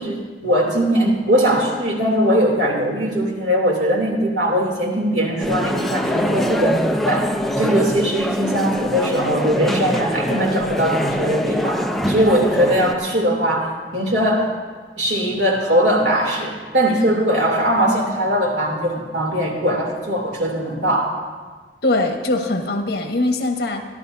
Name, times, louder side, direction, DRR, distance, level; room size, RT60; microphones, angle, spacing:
voice 1, 0.0-7.3 7.6-14.5 15.0-21.2, equal, 90° right, -1 dB, 3.0 m, -20 dB
sound 1, 5.4-12.9, equal, ahead, 0.6 m, -23 dB
voice 2, 21.8-23.8, left 2 dB, 60° left, 4 dB, 1.4 m, -21 dB
26.5 x 12.0 x 2.7 m, 1.4 s
head